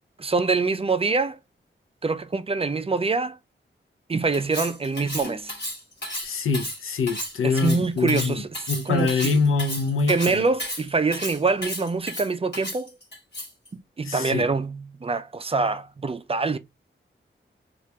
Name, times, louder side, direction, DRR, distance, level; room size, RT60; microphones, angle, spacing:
voice 1, 0.2-1.4 2.0-3.4 4.1-5.5 7.4-8.5 8.9-9.3 10.1-12.9 14.0-16.6, right 4 dB, 30° right, 0.4 m, -25 dB
Cutlery silverware, 4.3-13.7, left 1 dB, 55° left, 1.6 m, -34 dB
voice 2, 6.2-8.4 8.7-10.5 14.0-14.4, left 4 dB, 85° left, 0.6 m, -24 dB
3.1 x 2.4 x 2.8 m
wide cardioid pair, 80°, 21 cm